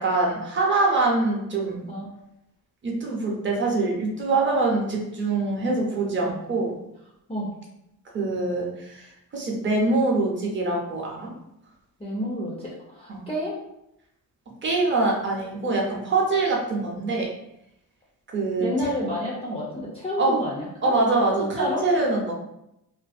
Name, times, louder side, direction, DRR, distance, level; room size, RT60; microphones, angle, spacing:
voice 1, 0.0-1.8 2.8-6.7 8.1-9.1 9.3-11.3 13.1-13.2 14.6-17.3 18.3-18.7 20.2-20.4 20.8-22.3, right 3 dB, 30° right, -1 dB, 0.6 m, -24 dB
voice 2, 12.0-13.5 18.6-20.9 21.6-21.8, left 1 dB, 15° left, -5 dB, 0.4 m, -30 dB
2.6 x 2.6 x 2.4 m, 0.84 s
cardioid pair, 140°, 38 cm